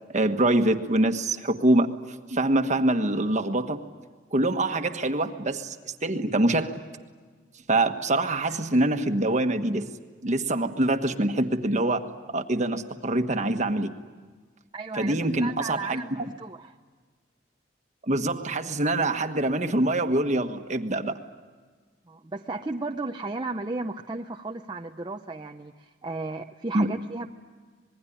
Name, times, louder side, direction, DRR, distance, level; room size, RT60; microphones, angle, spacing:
voice 1, 0.1-1.9 2.3-3.8 4.3-6.8 7.7-9.9 10.2-12.1 12.3-13.9 15.0-16.3 18.0-21.1 26.7-26.9, right 1 dB, 40° right, 7 dB, 1.4 m, -24 dB
voice 2, 14.7-16.7 22.1-27.3, right 3 dB, 25° right, 3 dB, 0.7 m, -34 dB
26.5 x 21.0 x 10.0 m, 1.5 s
head